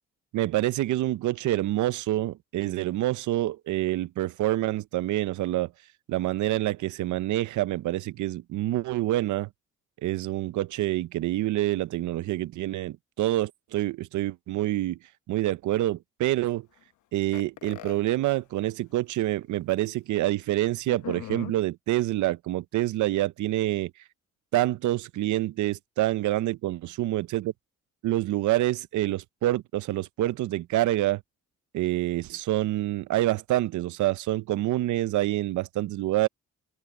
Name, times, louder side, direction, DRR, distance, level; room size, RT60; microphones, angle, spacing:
voice 1, 0.3-5.7 6.1-9.5 10.0-15.0 15.3-16.7 17.1-23.9 24.5-27.5 28.0-31.2 31.7-36.3, right 15 dB, 75° right, 0.7 m, -27 dB
sound 1, 17.3-18.0 18.9-19.0 19.3-19.4 20.9-21.5, left 13 dB, 80° left, 1.0 m, -39 dB
cardioid pair, 90°, 30 cm